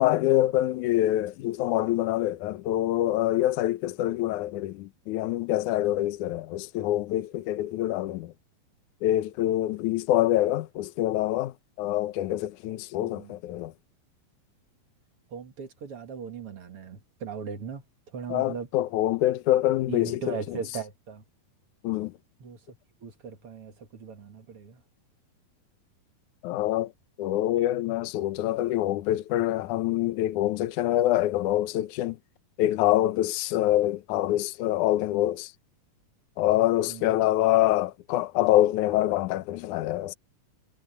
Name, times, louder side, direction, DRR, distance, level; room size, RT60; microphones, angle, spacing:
voice 1, 0.0-8.3 9.0-13.7 18.3-20.4 21.8-22.1 26.4-26.9 27.2-32.2 32.6-35.5 36.4-40.1, left 14 dB, 70° left, 2.1 m, -25 dB
voice 2, 13.0-13.4 15.3-17.8 18.1-18.7 19.9-21.2 22.4-24.8 36.9-37.1, right 6 dB, 45° right, 2.1 m, -38 dB
omnidirectional pair, 4.3 m